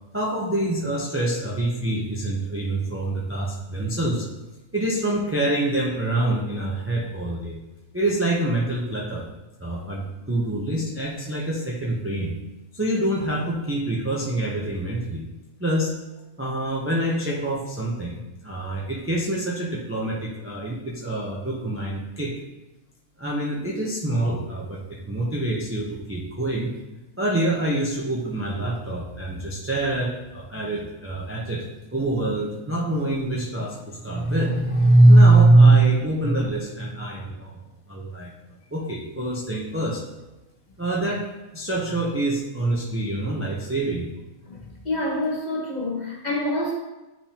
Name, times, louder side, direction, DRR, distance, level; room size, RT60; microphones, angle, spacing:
voice 1, 0.1-4.3 4.7-7.6 7.9-9.2 9.6-12.3 12.7-15.2 15.6-15.9 16.4-22.3 23.2-26.8 27.2-31.6 31.9-37.6 37.9-38.3 38.7-40.0 40.8-41.2 41.5-44.1, right 2 dB, 15° right, -3 dB, 0.4 m, -23 dB
voice 2, 44.5-46.7, left 1 dB, 30° left, -4 dB, 1.3 m, -27 dB
9.9 x 3.5 x 2.8 m, 1.0 s
omnidirectional pair, 1.5 m